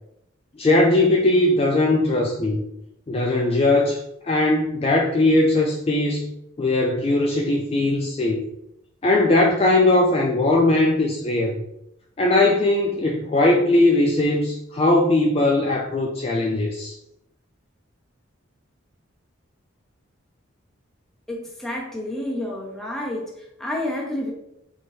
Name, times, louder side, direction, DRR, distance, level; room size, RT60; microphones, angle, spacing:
voice 1, 0.6-2.6 3.1-6.3 6.6-8.5 9.0-11.5 12.2-16.9, left 2 dB, 30° left, -1 dB, 0.3 m, -19 dB
voice 2, 21.3-24.3, left 1 dB, ahead, -3 dB, 0.7 m, -29 dB
4.1 x 2.8 x 3.1 m, 0.82 s
head